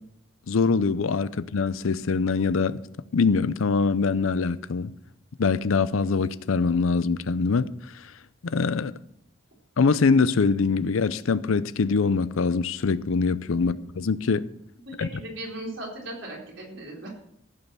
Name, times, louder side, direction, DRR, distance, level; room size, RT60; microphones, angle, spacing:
voice 1, 0.5-2.8 3.1-4.9 5.4-7.7 8.4-8.9 9.8-14.5 15.0-15.1, left 4 dB, 85° left, 0.6 m, -23 dB
voice 2, 14.9-17.1, right 1 dB, 70° right, 4.0 m, -38 dB
15.5 x 5.5 x 6.1 m
head